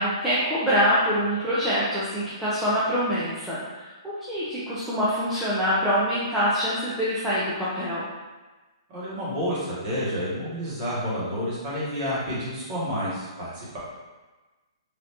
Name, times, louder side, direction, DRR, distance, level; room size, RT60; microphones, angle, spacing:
voice 1, 0.0-8.1, equal, 5° right, -11 dB, 0.3 m, -25 dB
voice 2, 8.9-13.8, equal, 25° right, -8 dB, 1.0 m, -29 dB
3.3 x 2.5 x 2.7 m, 1.2 s
hypercardioid pair, 170°, 3 cm